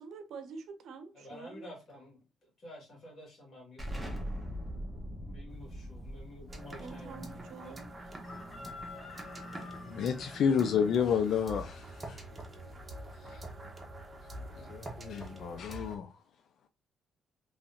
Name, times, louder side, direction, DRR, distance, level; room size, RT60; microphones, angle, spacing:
voice 1, 0.0-1.7 6.8-7.9, right 5 dB, 75° right, 0.7 m, -46 dB
voice 2, 1.1-4.3 5.2-7.2 7.6-7.9, left 1 dB, 50° left, 2.1 m, -51 dB
Explosion, 3.8-9.2, equal, ahead, 1.4 m, -42 dB
Chicken rooster, 5.5-13.8, left 3 dB, 30° left, 1.4 m, -53 dB
sound 1, 6.5-16.0, right 1 dB, 20° right, 1.1 m, -46 dB
voice 3, 9.5-12.2 13.2-13.4 14.5-16.2, left 7 dB, 70° left, 0.4 m, -31 dB
3.5 x 3.2 x 2.8 m
cardioid pair, 90°, 0 cm